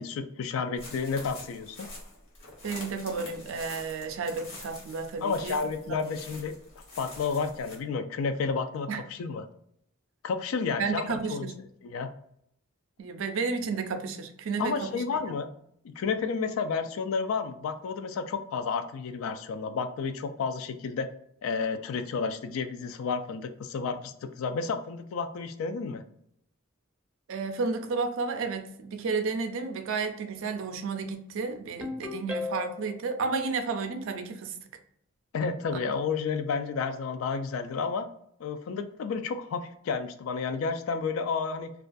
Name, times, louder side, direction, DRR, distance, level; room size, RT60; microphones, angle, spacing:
voice 1, 0.0-1.9 5.2-6.6 7.0-9.4 10.2-11.5 11.8-12.1 14.6-15.5 15.8-21.1 21.4-26.0 35.3-38.1 38.4-41.7, left 5 dB, 80° left, 9 dB, 0.3 m, -31 dB
sound 1, 0.8-7.8, left 2 dB, 60° left, 1.1 m, -46 dB
voice 2, 2.6-5.6 5.9-6.1 8.9-9.0 10.8-11.6 13.0-15.0 27.3-34.5, right 4 dB, 70° right, 7 dB, 0.4 m, -32 dB
Ringtone, 31.8-33.0, left 4 dB, 5° right, 0.4 m, -35 dB
2.3 x 2.2 x 2.5 m, 0.71 s
head